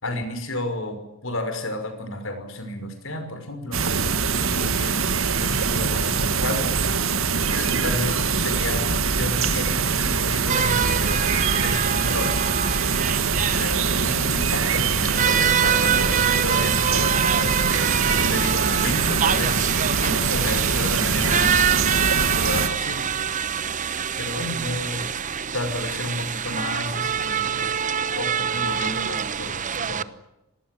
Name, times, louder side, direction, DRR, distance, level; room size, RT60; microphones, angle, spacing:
voice 1, 0.0-4.0 4.4-5.0 5.4-6.7 7.5-11.3 11.6-12.4 13.5-23.1 24.2-25.1 25.5-27.7 28.1-30.1, left 1 dB, 65° left, 8 dB, 5.9 m, -32 dB
Distant thrushes sing in the trees below, 3.7-22.7, right 5 dB, 70° right, 2.2 m, -23 dB
sound 1, 10.5-30.0, right 8 dB, 35° right, 0.9 m, -26 dB
26.0 x 19.5 x 9.4 m, 0.90 s
head